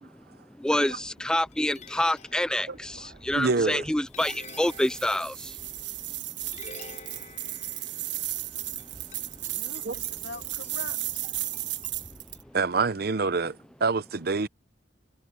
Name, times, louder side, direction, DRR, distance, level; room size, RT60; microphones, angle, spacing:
voice 1, 0.6-5.5, left 1 dB, 5° left, 0.3 m, -27 dB
sound 1, 0.8-12.9, left 3 dB, 40° left, 5.4 m, -50 dB
voice 2, 3.3-3.8 9.8-9.9 12.5-14.5, right 4 dB, 55° right, 0.7 m, -26 dB
sound 2, 4.2-12.4, right 15 dB, 85° right, 1.3 m, -35 dB
voice 3, 9.3-11.3, left 4 dB, 75° left, 1.1 m, -44 dB
head